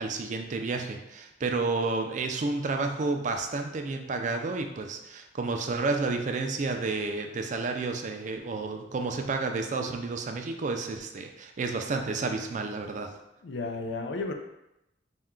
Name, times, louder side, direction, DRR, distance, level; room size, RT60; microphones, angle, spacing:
voice 1, 0.0-13.1, right 3 dB, 45° right, 4 dB, 0.4 m, -31 dB
voice 2, 13.1-14.3, left 3 dB, 80° left, 5 dB, 0.5 m, -34 dB
4.3 x 2.2 x 3.6 m, 0.91 s
head